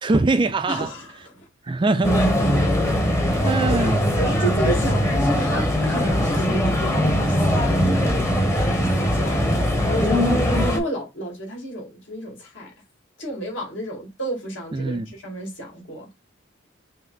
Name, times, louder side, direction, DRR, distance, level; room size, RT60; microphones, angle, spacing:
voice 1, 0.0-0.9 1.6-2.2 3.4-4.1 14.7-15.1, right 2 dB, 25° right, 0.4 m, -22 dB
voice 2, 0.7-1.4 3.3-10.2 10.7-12.7 13.2-16.1, right 1 dB, 65° left, 2.2 m, -32 dB
sound 1, 2.0-10.8, equal, 15° left, 0.9 m, -20 dB
5.6 x 2.0 x 3.9 m
head